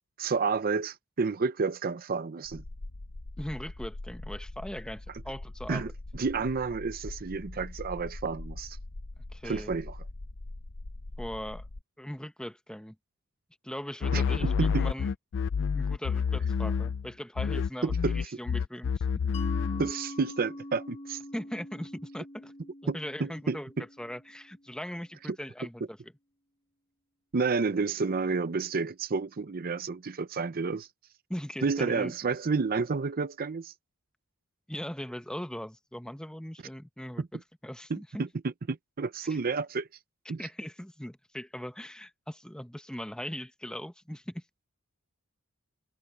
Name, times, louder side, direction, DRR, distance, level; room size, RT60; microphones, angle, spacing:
voice 1, 0.2-2.6 5.7-8.8 9.4-10.0 14.1-14.9 17.8-18.1 19.8-21.2 22.9-23.8 27.3-30.9 31.6-33.7 37.2-37.3 37.9-39.9 40.3-40.4, right 4 dB, 40° right, 0.6 m, -30 dB
sound 1, 2.4-11.8, left 2 dB, 85° left, 1.1 m, -42 dB
voice 2, 3.4-5.9 9.3-9.7 11.2-11.7 12.0-13.0 13.6-15.1 15.7-19.0 21.3-22.5 22.8-23.7 24.0-26.0 31.3-32.1 34.7-38.2 39.3-39.4 40.3-44.4, equal, 5° left, 0.9 m, -40 dB
sound 2, 14.0-17.1 17.4-19.9, left 6 dB, 60° left, 0.4 m, -28 dB
Mallet percussion, 19.3-24.7, left 1 dB, 30° left, 0.9 m, -44 dB
head